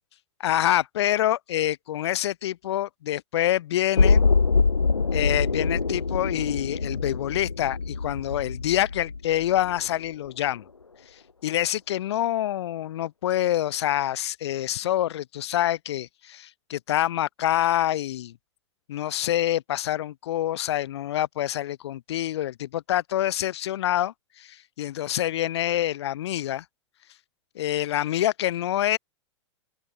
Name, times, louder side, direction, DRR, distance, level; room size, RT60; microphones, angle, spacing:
voice 1, 0.4-4.2 5.1-10.7 11.4-18.4 18.9-26.6 27.6-29.0, left 13 dB, 60° left, 5.9 m, -26 dB
sound 1, 4.0-9.9 10.3-10.4, left 4 dB, 80° left, 2.2 m, -24 dB
open air
figure-of-eight pair, 95°, 16 cm